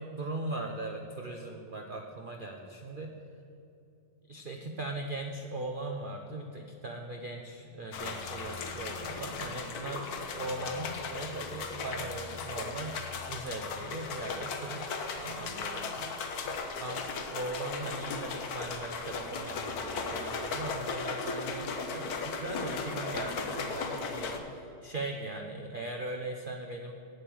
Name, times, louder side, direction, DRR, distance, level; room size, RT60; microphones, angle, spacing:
voice 1, 0.0-3.2 4.3-13.0 13.3-26.9, right 2 dB, 50° right, 2 dB, 0.6 m, -39 dB
sound 1, 7.9-24.4, left 4 dB, 65° left, 1.3 m, -37 dB
8.7 x 7.9 x 7.6 m, 2.7 s
omnidirectional pair, 1.9 m